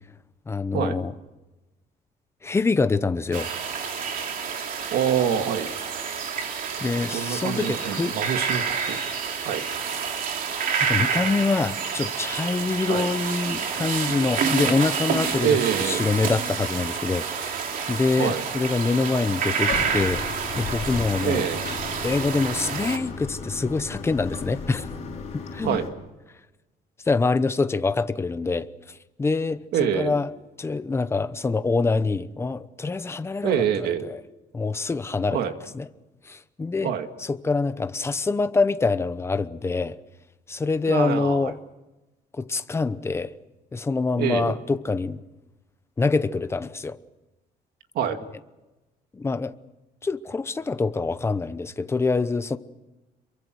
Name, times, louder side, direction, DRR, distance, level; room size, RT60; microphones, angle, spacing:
voice 1, 0.5-1.1 2.4-3.5 6.8-8.2 10.8-15.6 15.8-21.5 22.0-24.9 25.5-25.8 27.1-28.7 29.2-29.6 29.9-30.3 30.6-34.2 34.5-35.4 35.7-35.9 36.3-36.9 37.2-40.0 40.5-41.6 42.3-43.3 43.7-45.2 46.0-47.0 49.1-49.5 50.0-52.6, left 3 dB, 15° left, 0.9 m, -25 dB
sound 1, 3.3-23.0, right 6 dB, 60° right, 2.9 m, -28 dB
voice 2, 4.9-5.7 7.1-9.1 9.4-9.6 12.9-13.1 15.4-16.1 18.2-18.4 21.2-21.6 25.6-25.9 29.7-30.2 33.4-34.0 35.3-35.5 36.8-37.1 40.9-41.5 44.1-44.6 47.9-48.2, right 8 dB, 75° right, 2.2 m, -25 dB
Bathtub (filling or washing), 19.7-25.9, left 5 dB, 40° left, 6.4 m, -35 dB
27.0 x 23.5 x 6.4 m
cardioid pair, 155°, 16 cm